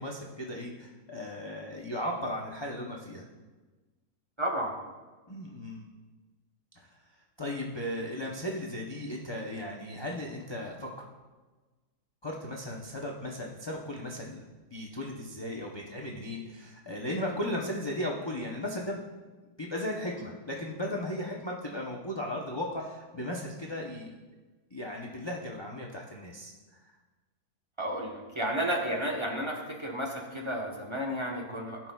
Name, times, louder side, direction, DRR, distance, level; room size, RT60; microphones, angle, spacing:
voice 1, 0.0-3.3 5.3-5.9 6.8-6.9 7.4-11.0 12.2-14.4 14.7-19.0 19.6-24.1 24.7-26.5 26.9-27.0, left 1 dB, 35° left, -2 dB, 0.4 m, -36 dB
voice 2, 4.4-4.7 27.8-31.8, equal, 20° right, -1 dB, 0.9 m, -32 dB
16.0 x 5.8 x 2.3 m, 1.3 s
omnidirectional pair, 1.7 m